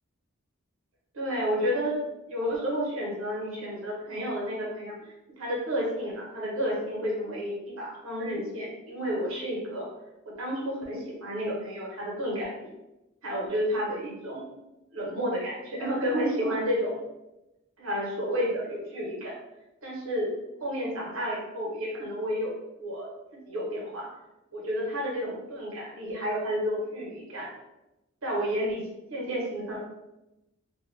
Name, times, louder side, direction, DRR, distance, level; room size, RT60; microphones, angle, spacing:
voice 1, 1.1-2.0 2.3-9.9 10.3-12.7 13.2-14.5 14.9-17.0 17.8-19.4 19.8-20.3 20.6-22.5 22.8-24.1 24.5-27.5 28.2-28.8 29.1-29.8, equal, 75° right, -3 dB, 0.9 m, -31 dB
2.3 x 2.2 x 3.1 m, 0.95 s
head